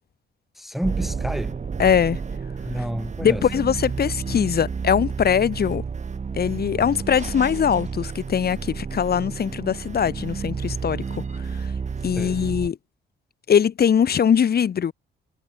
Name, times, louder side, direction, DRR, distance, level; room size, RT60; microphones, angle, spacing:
voice 1, 0.6-1.6 2.6-3.5 12.1-12.4, equal, ahead, 1.2 m, -29 dB
sound 1, 0.8-12.7, right 5 dB, 35° right, 3.3 m, -31 dB
voice 2, 1.8-2.2 3.2-5.8 6.3-11.2 11.5-11.7 12.0-12.8 13.5-14.9, left 8 dB, 50° left, 2.9 m, -21 dB
cardioid pair, 90°, 20 cm